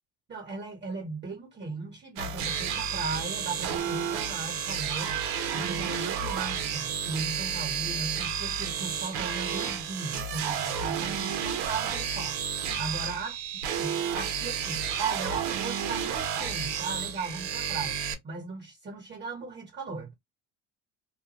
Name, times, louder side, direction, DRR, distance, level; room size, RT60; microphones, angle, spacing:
voice 1, 0.3-5.2 5.5-13.4 13.8-20.1, right 4 dB, 30° right, 1.2 m, -37 dB
sound 1, 2.2-18.1, right 7 dB, 85° right, 0.9 m, -31 dB
2.4 x 2.1 x 2.9 m
cardioid pair, 95°, 36 cm